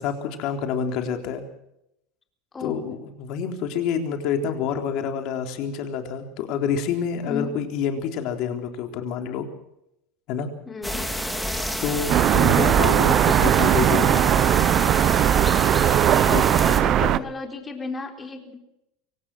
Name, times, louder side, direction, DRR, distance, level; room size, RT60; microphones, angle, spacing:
voice 1, 0.0-1.4 2.6-9.5 10.3-10.5 11.8-14.2 16.3-16.4 17.0-17.2, left 7 dB, 60° left, 5 dB, 3.7 m, -27 dB
voice 2, 2.5-2.8 7.3-7.6 10.6-11.1 16.0-18.6, left 4 dB, 20° left, 3 dB, 4.0 m, -34 dB
sound 1, 10.8-16.8, equal, ahead, 3.4 m, -28 dB
sound 2, 12.1-17.2, right 12 dB, 45° right, 0.8 m, -19 dB
24.5 x 18.5 x 6.3 m, 0.82 s
supercardioid pair, 110°, 0 cm